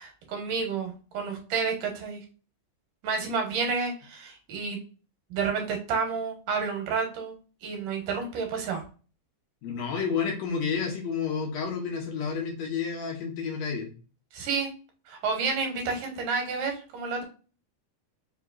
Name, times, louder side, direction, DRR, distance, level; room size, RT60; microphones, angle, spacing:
voice 1, 0.0-2.2 3.0-4.8 5.3-7.4 7.6-8.8 14.3-14.7 15.1-17.2, right 5 dB, 80° right, 2 dB, 2.7 m, -30 dB
voice 2, 9.6-13.9, left 6 dB, 70° left, 0 dB, 1.9 m, -30 dB
5.4 x 2.9 x 2.4 m, 0.37 s
omnidirectional pair, 3.6 m